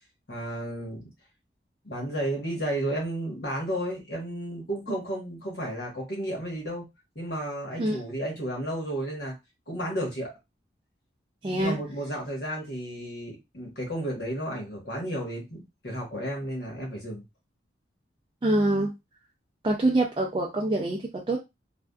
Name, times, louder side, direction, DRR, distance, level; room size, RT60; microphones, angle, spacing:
voice 1, 0.3-1.1 1.8-6.8 7.1-9.3 9.7-10.3 11.5-17.2, right 1 dB, 65° left, -1 dB, 1.1 m, -32 dB
voice 2, 11.4-11.8 18.4-18.9 19.6-21.4, right 1 dB, 25° right, -1 dB, 0.4 m, -25 dB
2.6 x 2.2 x 2.2 m, 0.22 s
head